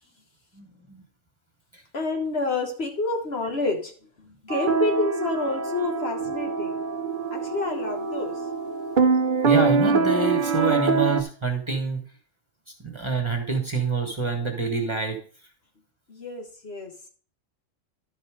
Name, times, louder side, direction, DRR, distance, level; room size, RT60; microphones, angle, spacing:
voice 1, 0.5-1.0 9.4-12.0 12.8-15.2, right 4 dB, 25° right, 3 dB, 1.4 m, -26 dB
voice 2, 1.9-3.9 4.2-6.8 7.3-8.4 16.1-16.9, left 3 dB, 55° left, 3 dB, 1.6 m, -28 dB
sound 1, 4.5-11.2, right 4 dB, 45° right, 0.9 m, -24 dB
11.5 x 5.4 x 4.9 m, 0.42 s
omnidirectional pair, 1.3 m